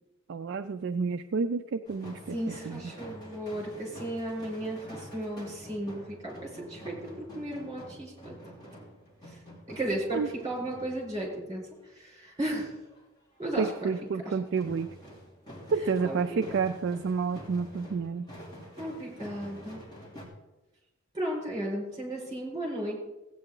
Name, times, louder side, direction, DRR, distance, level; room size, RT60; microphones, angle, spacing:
voice 1, 0.3-2.8 10.1-10.3 13.6-14.9 15.7-18.3, right 5 dB, 55° right, 7 dB, 0.4 m, -30 dB
sound 1, 1.8-11.4 12.7-13.0 13.4-13.5 13.8-14.2 14.5-20.3, equal, 20° left, 2.9 m, -47 dB
voice 2, 2.3-8.3 9.7-11.7 12.0-12.7 13.4-13.9 15.8-16.4 18.8-19.8 21.1-23.0, right 1 dB, 20° right, -3 dB, 4.7 m, -35 dB
16.0 x 8.9 x 3.8 m, 1.0 s
head